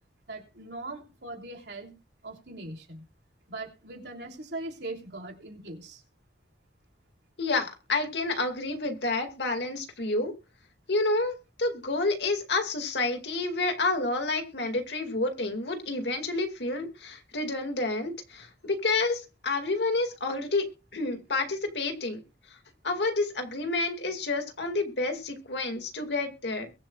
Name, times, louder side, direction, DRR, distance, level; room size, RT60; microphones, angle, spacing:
voice 1, 0.3-2.0 2.2-3.0 3.5-6.0, right 2 dB, 70° right, 2 dB, 3.3 m, -40 dB
voice 2, 7.4-10.3 10.9-20.6 20.9-22.2 22.8-26.7, left 3 dB, 75° left, 5 dB, 2.3 m, -29 dB
22.5 x 7.8 x 2.4 m, 0.30 s
head